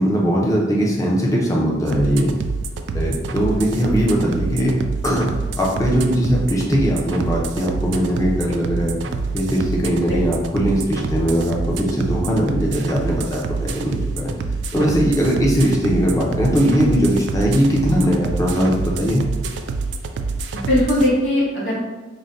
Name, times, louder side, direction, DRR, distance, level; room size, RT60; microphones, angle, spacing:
voice 1, 0.0-2.3 2.9-4.7 5.0-5.3 5.6-9.0 9.3-14.3 14.7-19.2, equal, 15° left, -3 dB, 0.6 m, -20 dB
sound 1, 1.9-21.1, right 3 dB, 65° right, 0.3 m, -26 dB
voice 2, 20.5-21.8, left 1 dB, 60° left, -5 dB, 1.3 m, -20 dB
3.9 x 2.2 x 3.9 m, 1.1 s
head